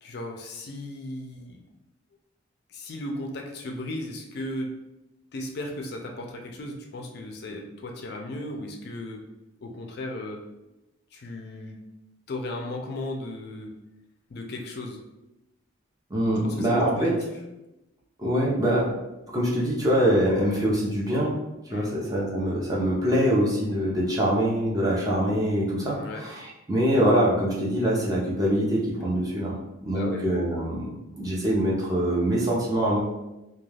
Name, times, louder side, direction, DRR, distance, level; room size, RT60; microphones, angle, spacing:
voice 1, 0.0-1.6 2.7-4.8 5.3-9.3 9.6-10.4 11.1-11.8 12.3-13.8 14.3-15.0 16.4-17.4 21.7-21.9 25.9-26.2 29.9-30.2, left 1 dB, 50° left, 2 dB, 0.3 m, -36 dB
voice 2, 16.1-17.1 18.2-18.9 19.3-21.3 21.7-29.6 29.8-30.9 31.2-33.0, equal, 20° right, -5 dB, 0.5 m, -24 dB
2.3 x 2.2 x 3.2 m, 0.96 s
head